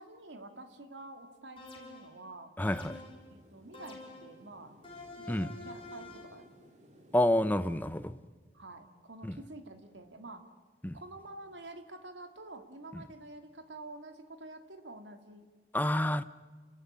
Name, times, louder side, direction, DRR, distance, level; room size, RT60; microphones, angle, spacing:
voice 1, 0.0-2.5 3.3-4.7 5.2-6.5 8.5-10.4 10.9-15.5, right 2 dB, 85° right, 2.3 m, -48 dB
sound 1, 1.6-2.2 2.6-3.3 3.7-4.4 4.8-6.4, left 2 dB, 30° left, 5.8 m, -48 dB
voice 2, 2.6-3.0 5.3-5.5 7.1-8.2 9.2-9.3 10.8-11.0 15.7-16.2, left 1 dB, 10° left, 0.8 m, -28 dB
sound 2, 2.8-8.1, equal, 40° right, 3.0 m, -60 dB
30.0 x 14.5 x 9.8 m
head